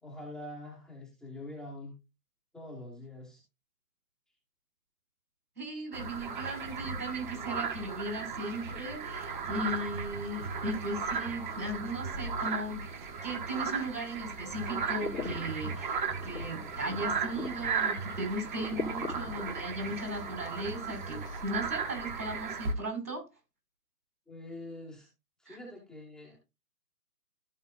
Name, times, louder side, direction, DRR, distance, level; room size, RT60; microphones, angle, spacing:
voice 1, 0.0-1.9 2.5-3.4 24.3-25.1 25.4-26.4, left 1 dB, ahead, 1.2 m, -45 dB
voice 2, 5.6-12.8 13.2-16.0 16.2-23.2 25.5-25.6, right 1 dB, 80° right, 5.4 m, -37 dB
sound 1, 5.9-22.7, right 5 dB, 30° right, 1.3 m, -36 dB
sound 2, 14.6-21.4, left 4 dB, 75° left, 2.0 m, -43 dB
14.0 x 5.3 x 2.4 m
figure-of-eight pair, 140°, 47 cm